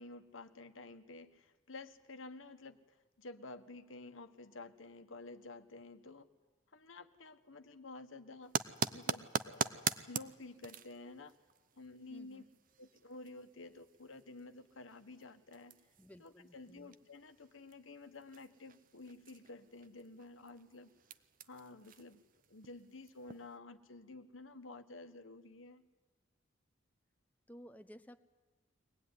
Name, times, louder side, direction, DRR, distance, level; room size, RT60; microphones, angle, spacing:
voice 1, 0.0-6.3 6.7-8.6 8.9-11.3 11.7-12.4 12.8-15.8 16.2-20.9 21.5-22.2 22.5-25.8, left 3 dB, 80° left, 9 dB, 1.4 m, -51 dB
sound 1, 8.4-23.6, right 6 dB, 45° right, 0.7 m, -44 dB
voice 2, 12.1-12.5 16.0-16.9 27.5-28.2, equal, 10° left, 9 dB, 0.8 m, -55 dB
23.5 x 18.5 x 9.7 m, 1.3 s
head